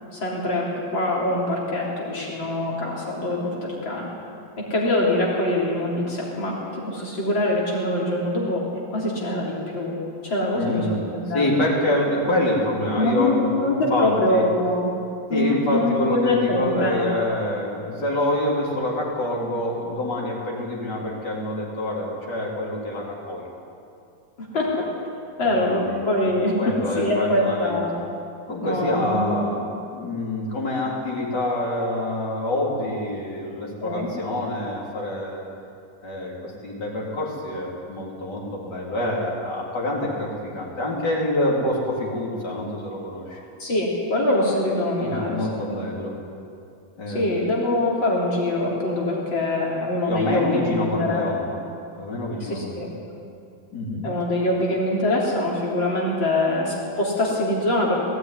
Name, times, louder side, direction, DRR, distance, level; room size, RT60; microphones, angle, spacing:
voice 1, 0.1-4.1 4.6-8.6 8.9-9.9 10.2-11.5 12.9-14.9 15.3-17.1 24.4-24.9 25.4-26.6 27.0-27.9 28.6-29.4 33.8-34.1 43.6-45.4 45.7-45.8 47.1-51.2 52.4-52.9 54.0-58.0, left 1 dB, 80° left, -4 dB, 4.2 m, -24 dB
voice 2, 10.5-11.0 11.3-14.4 15.3-23.5 24.7-24.8 25.6-26.0 26.2-26.3 26.6-27.8 28.5-29.6 29.9-35.5 36.0-43.4 45.0-46.1 47.0-47.3 50.1-51.5 52.0-52.9 53.7-54.1, left 1 dB, 60° left, -4 dB, 4.2 m, -26 dB
18.5 x 16.0 x 9.8 m, 2.5 s
omnidirectional pair, 2.1 m